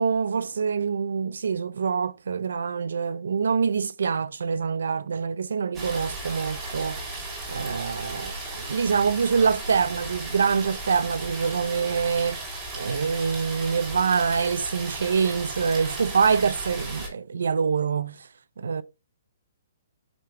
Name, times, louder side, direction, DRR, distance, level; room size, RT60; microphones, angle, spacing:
voice 1, 0.0-7.0 7.5-8.3 8.7-12.4 12.7-18.3 18.6-18.8, right 6 dB, 85° right, 0.5 m, -25 dB
sound 1, 5.7-17.1, right 2 dB, 10° right, 2.9 m, -35 dB
6.8 x 5.2 x 3.2 m
hypercardioid pair, 175°, 0 cm